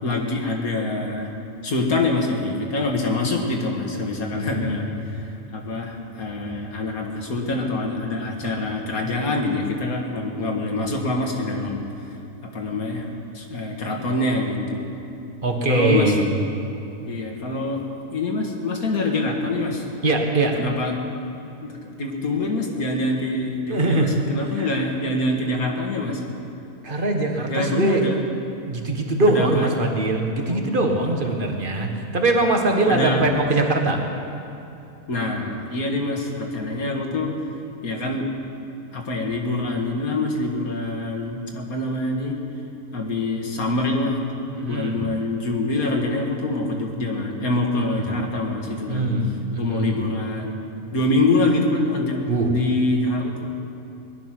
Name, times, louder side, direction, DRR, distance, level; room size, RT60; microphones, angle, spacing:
voice 1, 0.0-1.3 1.6-5.3 5.5-12.2 12.4-13.1 13.3-14.9 15.7-16.1 17.1-17.8 18.1-19.8 20.6-20.9 21.6-26.2 27.5-28.2 29.3-29.7 30.4-30.8 32.9-33.2 35.1-37.3 37.8-38.3 38.9-42.4 42.9-44.3 44.6-49.1 49.5-50.6 50.9-52.2 52.5-53.5, left 2 dB, 75° left, 1 dB, 2.2 m, -25 dB
voice 2, 4.4-5.0 15.4-16.2 20.0-20.6 23.7-24.1 24.6-24.7 26.8-28.0 28.7-34.0 44.5-45.0 48.0-48.1 48.9-50.0 52.3-52.5, right 2 dB, 35° right, 2 dB, 1.7 m, -22 dB
19.5 x 12.0 x 6.0 m, 2.8 s
omnidirectional pair, 1.5 m